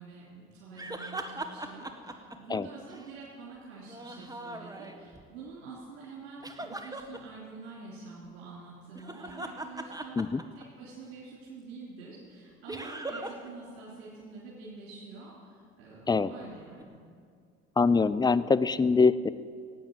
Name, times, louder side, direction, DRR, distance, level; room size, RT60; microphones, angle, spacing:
voice 1, 0.0-16.9, right 4 dB, 80° right, -7 dB, 3.5 m, -47 dB
sound 1, 0.8-3.1 3.8-5.2 6.4-7.2 8.9-10.9 12.7-13.5 13.8-13.9 16.8-16.9, right 2 dB, 10° right, 1.5 m, -40 dB
voice 2, 17.8-19.3, left 4 dB, 15° left, 14 dB, 0.6 m, -23 dB
16.5 x 8.7 x 9.5 m, 2.2 s
hypercardioid pair, 55°, 31 cm